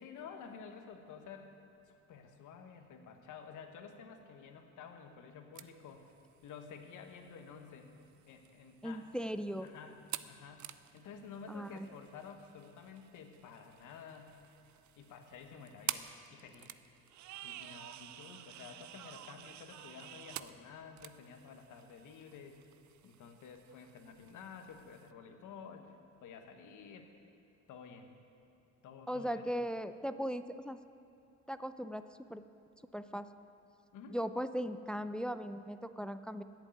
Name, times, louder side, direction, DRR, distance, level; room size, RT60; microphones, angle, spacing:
voice 1, 0.0-1.5 1.9-6.1 6.4-7.9 8.3-9.1 9.6-10.0 10.3-10.7 10.9-14.4 15.0-16.8 17.4-22.6 23.0-26.0 26.2-27.1 27.7-28.1 28.8-29.4 33.9-34.2, left 6 dB, 80° left, 6 dB, 1.2 m, -51 dB
sound 1, 5.5-25.1, right 13 dB, 70° right, 0.5 m, -50 dB
voice 2, 8.8-9.7 11.5-11.9 29.1-30.8 31.5-32.0 32.3-32.4 32.9-33.3 34.1-36.4, equal, 5° left, 11 dB, 0.4 m, -38 dB
10.5 x 8.2 x 9.3 m, 2.5 s
cardioid pair, 90°, 30 cm